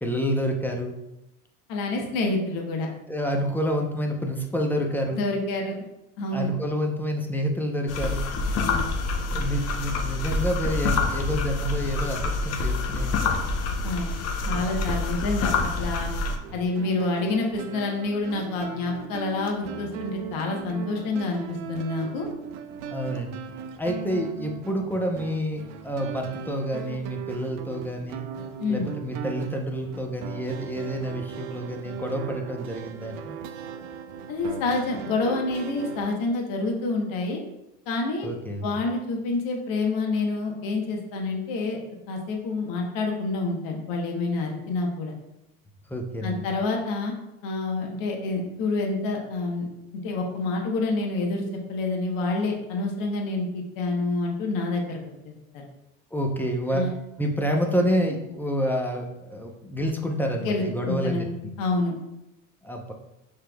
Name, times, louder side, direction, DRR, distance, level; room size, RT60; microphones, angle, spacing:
voice 1, 0.0-0.9 3.1-5.2 6.3-8.3 9.3-13.5 22.9-23.4 23.8-28.3 28.7-33.3 38.2-38.6 45.9-46.5 56.1-56.9 57.2-61.5 62.6-62.9, equal, 5° left, 2 dB, 0.6 m, -28 dB
voice 2, 1.7-2.9 5.1-5.8 6.2-6.5 8.5-8.9 9.3-9.4 13.8-14.1 14.5-16.1 16.5-22.3 28.6-28.9 34.3-37.4 37.9-38.3 38.6-41.8 42.1-45.1 46.2-47.1 47.4-49.7 50.0-55.0 55.2-55.6 56.7-56.9 60.4-61.3 61.6-61.9, left 3 dB, 60° left, 1 dB, 1.1 m, -28 dB
sound 1, 7.9-16.4, left 3 dB, 40° left, 0.7 m, -27 dB
sound 2, 16.4-36.1, right 7 dB, 65° right, 0.6 m, -38 dB
5.7 x 3.4 x 2.3 m, 0.90 s
hypercardioid pair, 80°, 39 cm